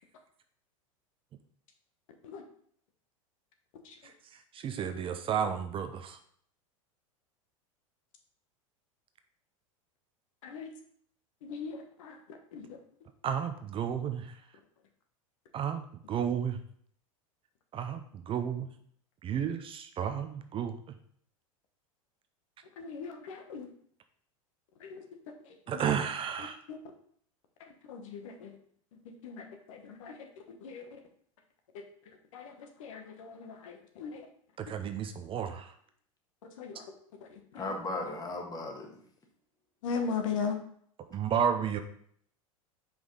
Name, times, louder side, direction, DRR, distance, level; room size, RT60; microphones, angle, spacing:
voice 1, 4.5-6.2 13.2-14.3 15.5-16.6 17.7-18.7 19.2-20.7 25.7-26.6 34.6-35.7 41.1-41.8, right 8 dB, 30° right, 7 dB, 0.6 m, -32 dB
voice 2, 11.4-12.2 12.5-12.7 22.8-23.7 24.8-25.0 25.4-25.9 26.7-26.8 27.6-28.5 29.2-30.2 30.6-30.9 32.3-34.3 36.4-36.8 37.3-37.4 39.8-40.6, left 5 dB, 70° left, 5 dB, 1.0 m, -38 dB
voice 3, 37.5-39.0, left 2 dB, 20° left, 1 dB, 1.5 m, -36 dB
5.3 x 4.6 x 3.8 m, 0.62 s
hypercardioid pair, 90°, 18 cm